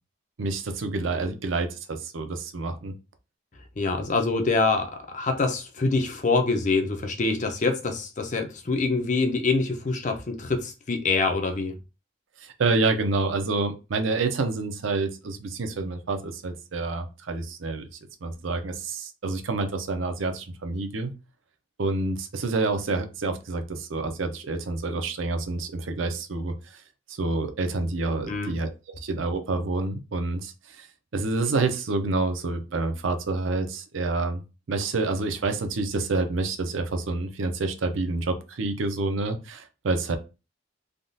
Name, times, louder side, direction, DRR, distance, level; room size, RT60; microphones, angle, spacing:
voice 1, 0.4-2.9 12.4-17.9 18.2-21.1 21.8-26.5 27.1-30.9 31.1-34.4 34.7-40.2, right 3 dB, 75° right, 7 dB, 0.6 m, -28 dB
voice 2, 3.8-11.7 28.3-28.5, left 3 dB, 40° left, 5 dB, 0.5 m, -25 dB
3.5 x 2.3 x 2.6 m, 0.30 s
head